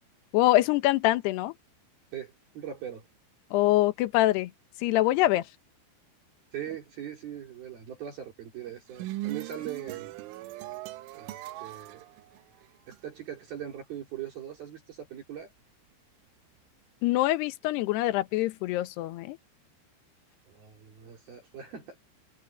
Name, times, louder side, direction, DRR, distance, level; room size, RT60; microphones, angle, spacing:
voice 1, 0.3-1.5 3.5-4.5 4.8-5.4 17.0-19.4, left 16 dB, 70° left, 2.9 m, -24 dB
voice 2, 2.1-3.1 6.5-10.1 11.1-12.1 12.9-15.5 20.5-22.0, right 10 dB, 55° right, 5.0 m, -40 dB
sound 1, 8.7-13.0, right 17 dB, 85° right, 3.5 m, -39 dB
omnidirectional pair, 5.5 m